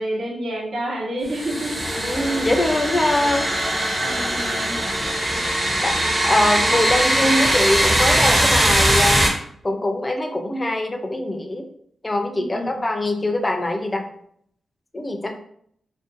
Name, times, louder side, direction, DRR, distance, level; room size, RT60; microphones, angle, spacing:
voice 1, 0.0-1.8 4.0-4.8 6.9-7.4 12.3-12.7, right 1 dB, 80° right, -3 dB, 0.8 m, -29 dB
sound 1, 1.3-9.3, right 1 dB, 25° right, 0.5 m, -20 dB
voice 2, 2.0-3.5 5.8-9.3 9.6-11.7 12.0-14.0 14.9-15.3, left 1 dB, 20° left, 4 dB, 0.3 m, -23 dB
2.4 x 2.1 x 2.6 m, 0.66 s
wide cardioid pair, 110°, 0 cm